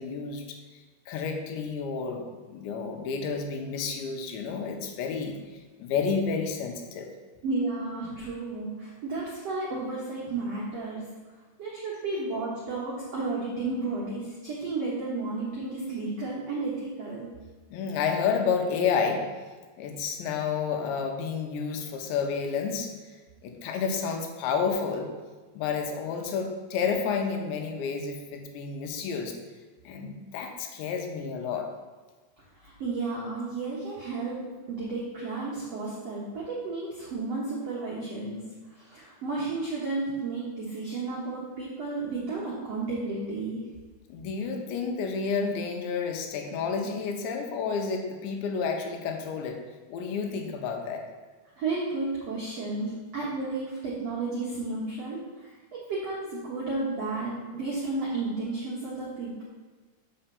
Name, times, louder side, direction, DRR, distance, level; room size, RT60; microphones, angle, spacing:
voice 1, 0.0-7.1 17.7-19.3 19.8-25.1 25.6-29.4 29.8-31.7 44.1-49.6 49.9-51.1, left 5 dB, 85° left, 4 dB, 3.2 m, -30 dB
voice 2, 7.4-11.0 11.6-17.3 32.6-34.4 34.7-38.4 38.7-43.6 51.6-59.4, right 3 dB, 75° right, -5 dB, 1.4 m, -32 dB
6.6 x 5.7 x 6.9 m, 1.3 s
omnidirectional pair, 5.1 m